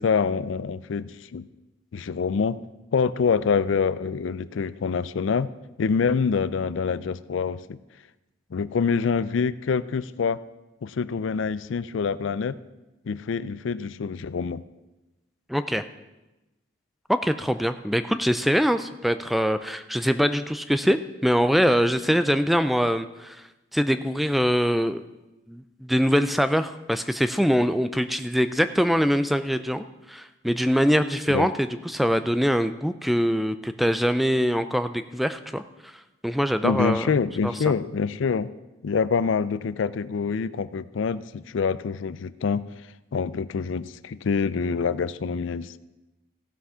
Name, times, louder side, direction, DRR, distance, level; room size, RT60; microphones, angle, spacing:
voice 1, 0.0-1.5 1.9-2.6 2.9-5.5 5.8-7.8 8.5-10.4 10.8-12.6 13.1-14.6 31.3-31.5 36.6-38.5 38.8-42.7 43.1-45.8, left 5 dB, 75° left, 16 dB, 0.4 m, -26 dB
voice 2, 15.5-15.8 17.1-23.4 23.7-25.0 25.5-35.6 36.2-37.1 37.4-37.5, equal, ahead, 11 dB, 0.3 m, -23 dB
16.0 x 5.9 x 5.6 m, 1.0 s
head